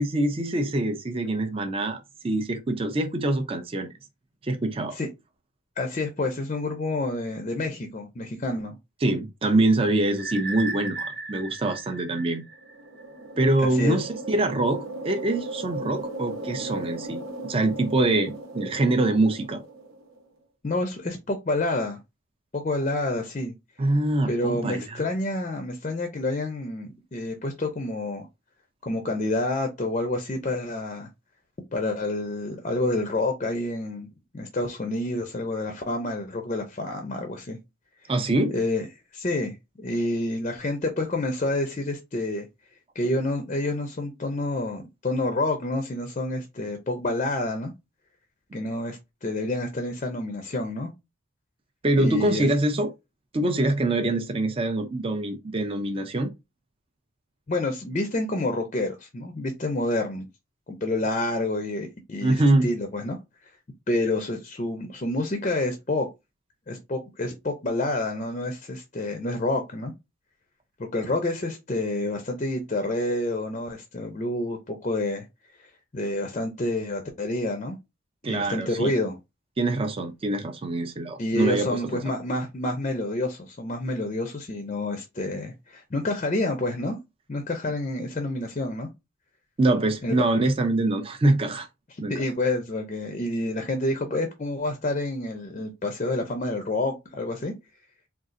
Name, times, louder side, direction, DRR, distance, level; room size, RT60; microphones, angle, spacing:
voice 1, 0.0-2.0 2.2-3.9 4.4-5.0 9.0-12.4 13.4-19.6 23.8-25.1 38.1-38.6 51.8-52.9 53.3-56.3 62.2-62.7 78.2-78.9 79.6-81.8 89.6-91.7 92.0-92.2, right 2 dB, 25° right, 0.4 m, -24 dB
voice 2, 5.8-8.8 9.5-9.6 13.6-14.0 20.6-22.0 22.5-23.5 24.3-28.3 28.8-31.1 31.7-34.1 34.3-37.6 38.5-38.9 39.1-42.5 42.9-47.7 48.5-50.9 52.0-52.5 57.5-60.3 60.7-63.2 63.9-66.1 66.7-69.9 70.8-75.3 75.6-77.8 78.3-79.2 81.2-87.0 87.3-88.9 90.0-90.1 92.1-97.5, left 2 dB, 35° left, 0.5 m, -28 dB
sound 1, 10.2-13.0, right 3 dB, 50° right, 0.7 m, -36 dB
sound 2, 12.5-20.2, right 2 dB, 80° right, 0.8 m, -38 dB
3.8 x 2.4 x 2.5 m
head